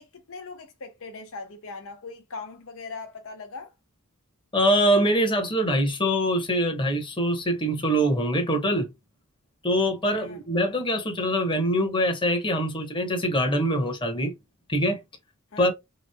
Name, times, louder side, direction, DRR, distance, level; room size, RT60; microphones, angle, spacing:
voice 1, 0.0-3.7 10.1-10.4 15.5-15.7, left 4 dB, 65° left, 0.7 m, -40 dB
voice 2, 4.5-8.9 9.6-14.3 14.7-15.0 15.6-15.7, equal, 25° left, 1.1 m, -24 dB
3.6 x 3.0 x 2.3 m
head